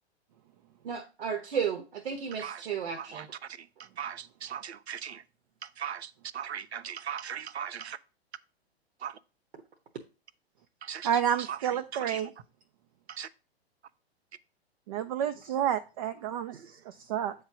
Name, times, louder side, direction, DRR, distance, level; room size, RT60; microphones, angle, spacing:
voice 1, 0.8-3.3, right 7 dB, 60° right, 1.0 m, -33 dB
voice 2, 2.3-2.7 3.0-5.2 5.6-8.0 9.0-9.2 10.8-12.2 13.1-13.3 16.5-16.7, right 8 dB, 75° right, 0.6 m, -39 dB
voice 3, 11.0-12.3 14.9-16.5 16.9-17.3, right 9 dB, 35° right, 0.4 m, -29 dB
8.0 x 3.2 x 5.8 m
figure-of-eight pair, 110°, 32 cm